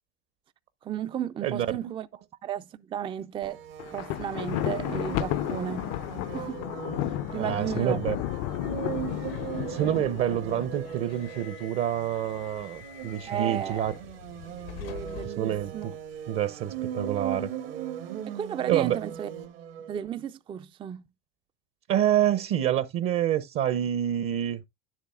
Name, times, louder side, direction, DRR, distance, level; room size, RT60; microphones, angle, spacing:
voice 1, 0.8-2.1 2.4-3.6 3.9-5.9 6.3-6.6 7.3-8.0 13.3-13.8 14.8-15.9 18.3-19.3 19.9-21.0, right 9 dB, 20° right, 0.3 m, -34 dB
voice 2, 1.4-1.9 7.3-8.2 9.7-13.9 15.3-15.9 16.3-17.5 18.7-19.0 21.9-24.6, right 11 dB, 45° right, 0.7 m, -27 dB
sound 1, 3.4-20.0, right 9 dB, 75° right, 1.6 m, -39 dB
Thunder, 3.8-11.0, left 14 dB, 50° left, 0.5 m, -32 dB
Subway metro underground, 8.7-16.3, left 9 dB, 80° left, 1.0 m, -47 dB
9.6 x 7.4 x 2.4 m
hypercardioid pair, 90°, 30 cm